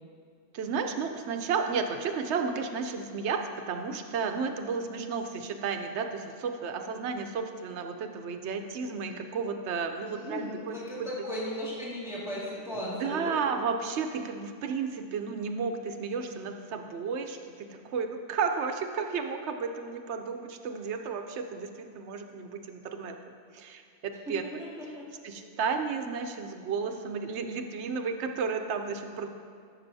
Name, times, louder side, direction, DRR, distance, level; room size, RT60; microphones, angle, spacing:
voice 1, 0.5-11.1 12.7-23.1 23.5-24.6 25.2-29.3, right 5 dB, 85° right, 6 dB, 1.0 m, -33 dB
voice 2, 10.1-13.4 24.3-25.1, equal, 5° right, -8 dB, 1.9 m, -36 dB
13.0 x 6.3 x 2.7 m, 2.3 s
omnidirectional pair, 1.1 m